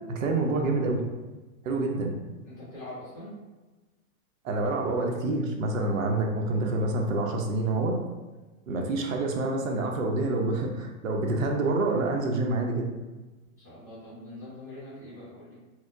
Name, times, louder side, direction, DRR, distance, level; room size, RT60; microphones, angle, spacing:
voice 1, 0.1-1.0 1.6-2.1 4.4-7.9 8.7-12.9, right 2 dB, 65° right, 1 dB, 0.6 m, -27 dB
voice 2, 2.4-3.4 13.6-15.5, left 1 dB, 15° right, -15 dB, 0.4 m, -43 dB
4.4 x 2.0 x 2.5 m, 1.2 s
supercardioid pair, 175°, 44 cm